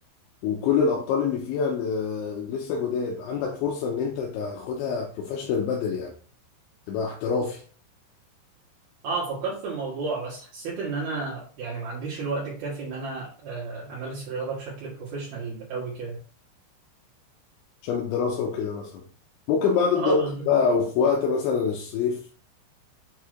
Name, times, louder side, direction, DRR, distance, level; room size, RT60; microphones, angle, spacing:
voice 1, 0.4-6.1 6.9-7.6 17.8-19.0 19.5-22.2, left 5 dB, 80° left, 3.0 m, -25 dB
voice 2, 9.0-16.2 20.0-20.5, right 4 dB, 60° right, 3.0 m, -32 dB
7.6 x 5.9 x 3.3 m
omnidirectional pair, 5.9 m